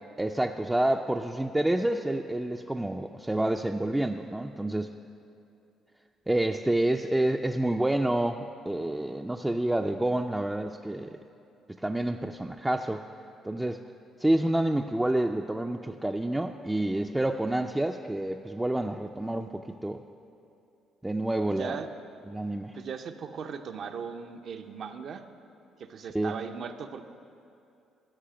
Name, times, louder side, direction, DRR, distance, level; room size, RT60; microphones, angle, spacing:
voice 1, 0.2-4.9 6.3-11.2 11.8-13.0 13.4-13.8 14.2-20.0 21.0-21.8 22.3-22.8 26.1-26.3, right 1 dB, 10° right, 3 dB, 0.4 m, -28 dB
voice 2, 21.5-21.9 22.7-25.2 25.8-27.0, right 6 dB, 60° right, 6 dB, 0.6 m, -38 dB
13.5 x 4.9 x 7.6 m, 2.6 s
supercardioid pair, 70°, 0 cm